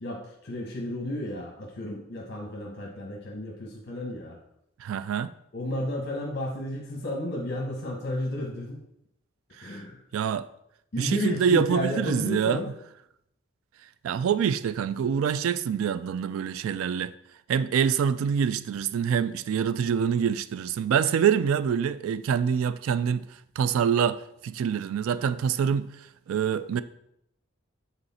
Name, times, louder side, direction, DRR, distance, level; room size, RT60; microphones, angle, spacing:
voice 1, 0.0-4.4 5.5-8.8 9.6-10.0 10.9-12.7, left 1 dB, 55° left, 1.2 m, -32 dB
voice 2, 4.8-5.3 9.6-9.8 10.1-10.5 11.0-12.6 14.0-17.1 17.5-23.3 23.6-25.9 26.3-26.8, right 7 dB, 90° right, 0.3 m, -25 dB
8.0 x 4.0 x 4.2 m
head